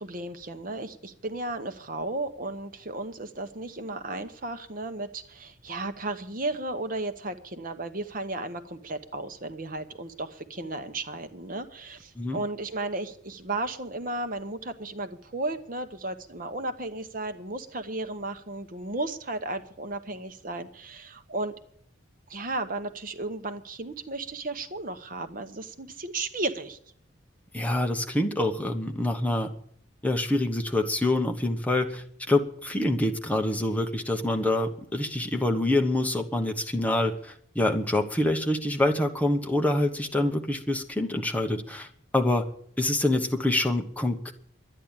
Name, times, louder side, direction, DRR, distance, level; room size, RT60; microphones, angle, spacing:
voice 1, 0.0-21.5 22.3-26.8, right 2 dB, 45° right, 9 dB, 0.9 m, -34 dB
voice 2, 27.5-29.5 30.0-41.9 42.1-42.5 42.8-44.3, left 1 dB, 10° left, 3 dB, 1.0 m, -26 dB
12.0 x 9.9 x 8.9 m, 0.65 s
head